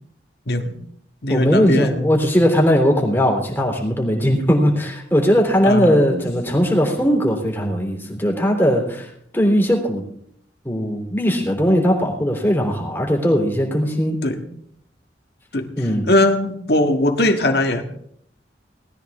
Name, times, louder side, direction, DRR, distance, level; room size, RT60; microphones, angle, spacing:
voice 1, 0.5-0.8 1.2-2.1 5.6-6.2 14.2-14.5 15.5-15.7 16.0-17.8, left 1 dB, 60° left, 5 dB, 1.7 m, -20 dB
voice 2, 1.3-10.0 10.6-14.2 15.8-16.1, equal, 10° left, 0 dB, 3.2 m, -19 dB
19.5 x 13.5 x 3.6 m, 0.69 s
head